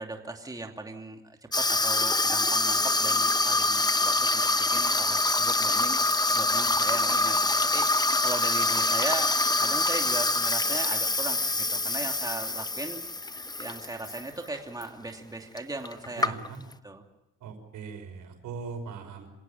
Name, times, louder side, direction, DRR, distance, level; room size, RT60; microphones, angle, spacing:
voice 1, 0.0-7.5 7.7-9.3 9.6-13.0 13.6-16.4 16.8-17.0, right 2 dB, 10° right, 3 dB, 2.8 m, -38 dB
Water tap faucet / Sink (filling or washing), 1.5-14.2 14.5-14.8 15.6-15.7 15.8-16.7, left 2 dB, 15° left, 0.9 m, -25 dB
voice 2, 16.2-16.6 17.4-19.3, right 5 dB, 85° right, 4 dB, 5.6 m, -40 dB
27.0 x 17.0 x 8.9 m, 0.87 s
cardioid pair, 90°, 30 cm